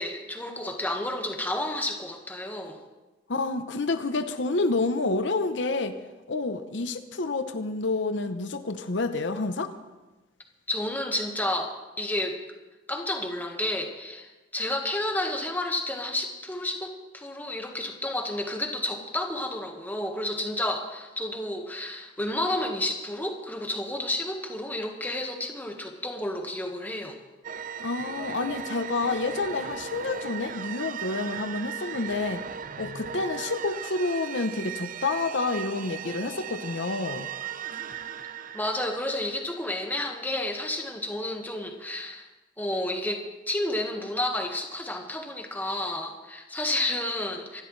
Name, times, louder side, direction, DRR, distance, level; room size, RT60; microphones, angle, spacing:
voice 1, 0.0-2.8 10.7-12.4 12.9-27.2 38.4-42.3 42.6-47.6, left 1 dB, 10° left, 3 dB, 1.5 m, -31 dB
voice 2, 3.3-6.0 6.3-9.7 27.8-32.4 32.8-37.3, left 3 dB, 75° left, 9 dB, 0.8 m, -29 dB
sound 1, 27.4-40.0, right 8 dB, 45° right, 0.6 m, -38 dB
25.5 x 12.5 x 3.3 m, 1.1 s
head